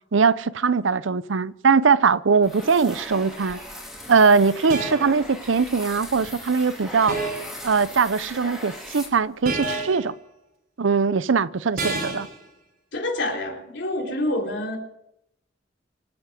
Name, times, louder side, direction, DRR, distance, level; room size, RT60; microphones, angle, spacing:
voice 1, 0.1-3.6 4.1-7.2 7.6-10.2 10.8-12.3, right 5 dB, 85° right, 0.6 m, -21 dB
sound 1, 2.4-9.6, left 1 dB, ahead, 4.3 m, -39 dB
sound 2, 3.4-3.7 4.7-5.2 7.1-7.6 9.4-10.1 11.8-12.4, right 2 dB, 55° right, 3.9 m, -29 dB
voice 2, 12.9-14.8, left 1 dB, 65° left, 3.5 m, -27 dB
25.5 x 9.3 x 5.1 m
head